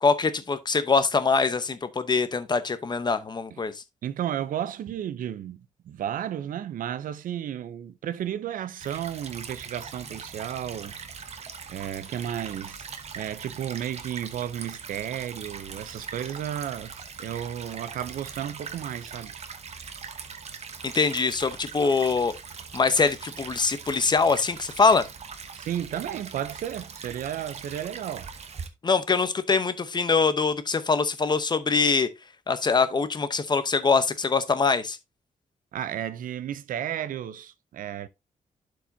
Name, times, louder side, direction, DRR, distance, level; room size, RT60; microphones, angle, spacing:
voice 1, 0.0-3.8 20.8-22.3 22.7-25.0 28.8-32.1 32.5-35.0, left 4 dB, 30° left, 0.8 m, -23 dB
voice 2, 4.0-10.9 11.7-12.9 13.1-19.4 25.5-28.3 35.7-38.1, right 10 dB, 80° right, 0.6 m, -33 dB
Stream / Trickle dribble, 8.8-28.7, right 6 dB, 50° right, 1.0 m, -41 dB
11.0 x 4.7 x 2.7 m
cardioid pair, 110°, 14 cm